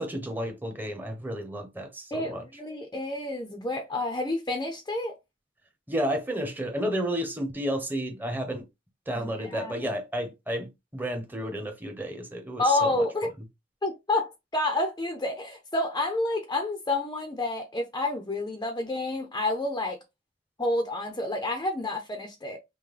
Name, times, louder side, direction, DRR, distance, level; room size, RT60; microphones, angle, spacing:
voice 1, 0.0-2.4 5.9-8.7 9.1-13.1, equal, 10° right, 1.0 m, -32 dB
voice 2, 2.1-5.2 9.1-9.7 12.6-13.3 13.8-20.0 20.6-22.6, left 2 dB, 20° left, 0.6 m, -29 dB
5.7 x 2.2 x 3.2 m
head